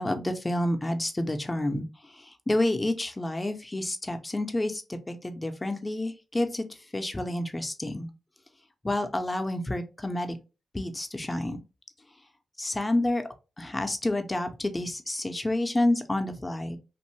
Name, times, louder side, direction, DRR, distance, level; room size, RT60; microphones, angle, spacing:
voice 1, 0.0-1.9 2.3-6.6 6.9-8.1 8.8-10.4 10.7-11.6 12.6-13.2 13.6-16.8, left 1 dB, 20° left, 6 dB, 0.7 m, -29 dB
2.6 x 2.6 x 3.1 m, 0.30 s
cardioid pair, 50°, 0 cm